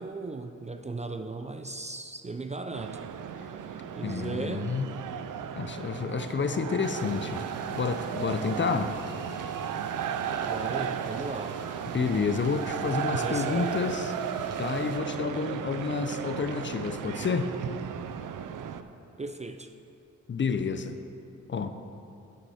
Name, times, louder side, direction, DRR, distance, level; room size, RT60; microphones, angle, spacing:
voice 1, 0.0-3.0 3.9-4.7 10.5-11.6 13.1-13.9 19.2-19.7, right 3 dB, 25° right, 7 dB, 0.4 m, -36 dB
sound 1, 2.7-18.8, right 8 dB, 85° right, 0.5 m, -35 dB
voice 2, 4.0-4.9 5.6-7.4 7.7-8.9 11.9-14.1 14.6-17.5 20.3-21.0 21.5-21.8, left 5 dB, 40° left, 9 dB, 0.6 m, -29 dB
sound 2, 6.8-15.0, right 3 dB, 55° right, 1.0 m, -49 dB
9.6 x 9.3 x 4.3 m, 2.7 s
wide cardioid pair, 105°, 31 cm